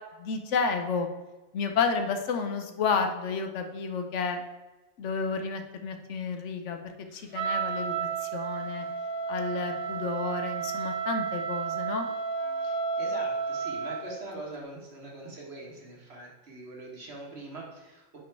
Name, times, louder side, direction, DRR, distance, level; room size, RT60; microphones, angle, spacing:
voice 1, 0.2-1.1 1.5-4.4 5.0-6.8 7.1-8.8 9.3-12.1, left 5 dB, 85° left, 6 dB, 1.1 m, -31 dB
Wind instrument woodwind instrument, 7.3-14.1, right 6 dB, 35° right, 0.5 m, -32 dB
voice 2, 12.6-18.2, right 2 dB, 65° right, -2 dB, 1.7 m, -43 dB
5.1 x 5.1 x 4.5 m, 1.1 s
omnidirectional pair, 1.2 m